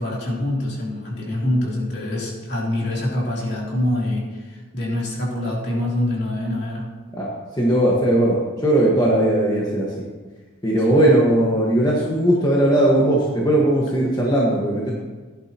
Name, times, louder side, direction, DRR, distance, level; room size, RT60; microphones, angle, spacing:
voice 1, 0.0-6.8 10.9-11.1, left 1 dB, 55° left, -4 dB, 3.4 m, -25 dB
voice 2, 7.6-9.9 10.6-14.9, right 1 dB, 20° left, -5 dB, 1.5 m, -18 dB
17.0 x 11.0 x 3.0 m, 1.3 s
head